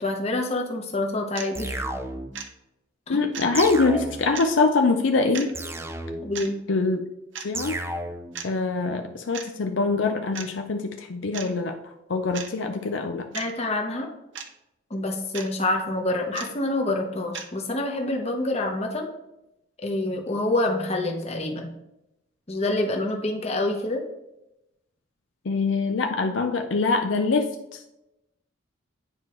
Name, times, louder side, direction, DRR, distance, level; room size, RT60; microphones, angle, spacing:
voice 1, 0.0-1.8 3.1-3.2 6.2-6.6 13.3-14.1 14.9-19.1 19.8-21.7 22.5-24.0, left 2 dB, 30° left, 2 dB, 1.0 m, -27 dB
sound 1, 1.3-1.5 2.3-2.5 3.3-3.5 4.3-4.5 5.3-5.5 6.3-6.5 7.3-7.5 8.3-8.5 9.3-9.5 10.3-10.5 11.3-11.5 12.3-12.5 13.3-13.5 14.3-14.5 15.3-15.5 16.3-16.5 17.3-17.5, right 7 dB, 65° right, 0.7 m, -35 dB
sound 2, 1.5-2.4 3.5-4.4 5.5-6.4 7.5-8.4, right 1 dB, 15° right, 0.5 m, -33 dB
voice 2, 3.1-5.5 6.7-7.0 7.4-7.8 8.4-11.8 12.1-13.3 25.4-27.8, left 3 dB, 70° left, 5 dB, 0.5 m, -24 dB
9.6 x 4.5 x 3.1 m, 0.90 s
head